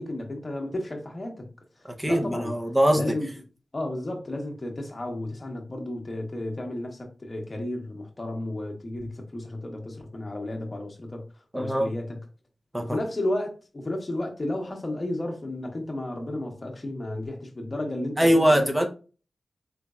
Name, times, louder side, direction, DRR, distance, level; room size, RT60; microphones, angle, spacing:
voice 1, 0.0-1.5 1.8-2.5 2.9-3.3 3.7-11.2 11.5-12.2 12.8-18.7, left 1 dB, 30° left, 1.0 m, -33 dB
voice 2, 2.0-3.0 11.5-11.9 12.7-13.0 18.2-18.9, equal, 10° right, 0.7 m, -22 dB
4.1 x 3.2 x 2.4 m
wide cardioid pair, 90°, 0 cm